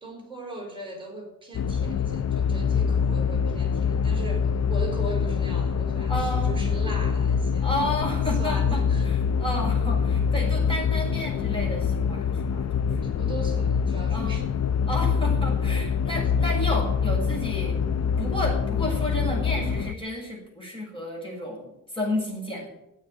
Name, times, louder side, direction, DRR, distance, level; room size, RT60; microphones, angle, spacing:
voice 1, 0.0-7.9 8.3-9.1 13.0-14.6 16.1-16.2, right 1 dB, 15° right, 0 dB, 5.0 m, -39 dB
sound 1, 1.5-20.0, left 6 dB, 55° left, 0.7 m, -25 dB
voice 2, 6.1-6.6 7.6-13.7 14.1-14.4 14.9-17.8 18.2-22.7, left 1 dB, 15° left, -2 dB, 6.4 m, -32 dB
14.0 x 8.9 x 9.5 m, 0.89 s
wide cardioid pair, 150°, 32 cm